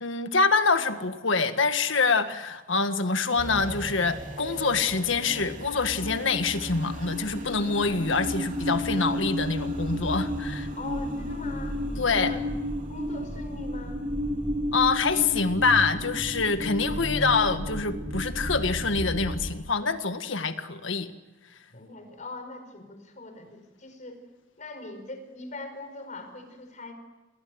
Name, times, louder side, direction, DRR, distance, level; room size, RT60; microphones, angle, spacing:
voice 1, 0.0-10.7 12.0-12.4 14.7-21.1, left 4 dB, 75° left, 9 dB, 1.7 m, -25 dB
sound 1, 3.4-19.5, equal, 40° right, 3.0 m, -32 dB
voice 2, 10.8-11.8 12.1-12.4 12.9-14.0 21.7-24.2 24.6-26.9, left 3 dB, 40° left, 7 dB, 5.2 m, -41 dB
28.5 x 20.0 x 7.9 m, 1.1 s
head